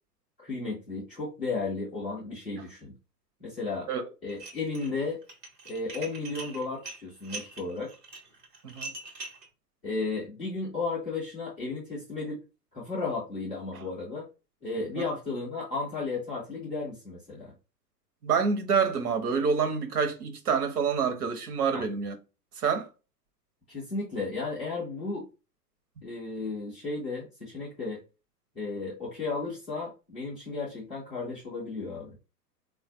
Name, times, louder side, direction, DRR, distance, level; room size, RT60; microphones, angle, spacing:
voice 1, 0.4-2.9 3.4-3.9 4.2-5.2 5.7-7.9 9.8-12.4 12.7-14.3 14.6-17.5 21.7-21.8 23.7-25.3 26.0-28.0 28.5-32.2, left 3 dB, 10° left, 0.3 m, -34 dB
Dishes pots and pans, 4.3-4.9 5.2-9.5, right 3 dB, 85° right, 1.2 m, -42 dB
voice 2, 18.2-22.1 22.6-22.9, right 6 dB, 65° right, 1.0 m, -27 dB
3.8 x 2.5 x 2.5 m
figure-of-eight pair, 110°, 49 cm